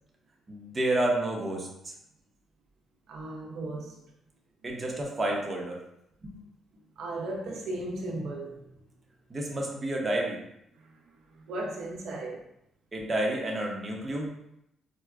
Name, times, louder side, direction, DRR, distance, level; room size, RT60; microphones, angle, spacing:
voice 1, 0.5-1.7 4.6-5.8 6.2-6.4 9.3-10.4 12.9-14.3, right 1 dB, 25° right, -1 dB, 0.7 m, -30 dB
voice 2, 3.1-4.0 7.0-8.7 10.7-12.4, right 2 dB, 75° right, -2 dB, 0.6 m, -36 dB
4.4 x 2.1 x 2.4 m, 0.79 s
cardioid pair, 90°, 0 cm